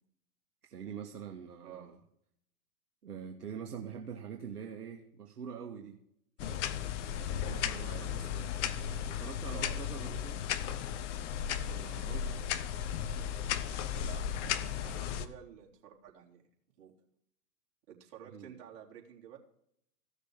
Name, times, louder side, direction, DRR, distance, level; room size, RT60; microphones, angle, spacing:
voice 1, 0.6-2.0 3.0-6.0 6.4-6.7 7.2-10.4 11.7-12.3 14.3-14.8 18.2-18.5, right 7 dB, 75° right, 3 dB, 1.5 m, -45 dB
voice 2, 1.6-2.0 7.8-8.1 9.5-9.9 11.6-11.8 13.9-14.3 14.8-16.4 16.8-16.9 17.9-19.4, right 9 dB, 45° right, -1 dB, 3.6 m, -51 dB
sound 1, 6.4-15.3, left 9 dB, 50° left, 1.2 m, -35 dB
15.5 x 6.6 x 7.8 m, 0.73 s
hypercardioid pair, 110°, 47 cm